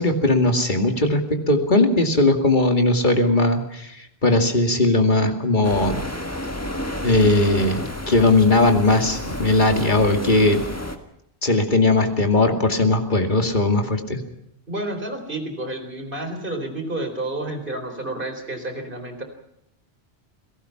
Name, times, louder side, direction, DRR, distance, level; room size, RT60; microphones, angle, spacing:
voice 1, 0.0-3.9 4.2-6.0 7.0-10.6 11.4-14.2, left 2 dB, 45° left, 4 dB, 2.6 m, -19 dB
sound 1, 5.6-11.0, left 1 dB, 15° left, 1.8 m, -31 dB
voice 2, 14.7-19.2, right 2 dB, 55° right, 6 dB, 4.3 m, -30 dB
29.0 x 18.0 x 5.9 m, 0.79 s
omnidirectional pair, 1.1 m